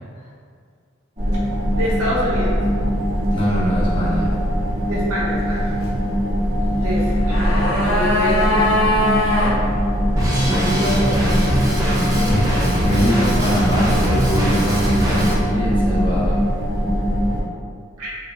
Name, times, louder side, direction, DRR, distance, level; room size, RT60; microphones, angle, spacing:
sound 1, 1.2-17.4, equal, 35° right, 0.7 m, -21 dB
voice 1, 1.5-2.6 4.9-5.7 6.7-8.6 10.6-11.6 12.0-12.3 18.0-18.1, equal, 80° right, -7 dB, 0.8 m, -26 dB
voice 2, 3.3-4.3 10.3-10.7 12.2-12.5 12.8-16.4, equal, 25° left, -9 dB, 0.7 m, -23 dB
sound 2, 7.0-9.6 9.8-9.9, left 1 dB, 65° left, 0.5 m, -20 dB
Drum kit, 10.2-15.3, equal, 15° right, 0.4 m, -21 dB
2.7 x 2.2 x 2.5 m, 2.2 s
head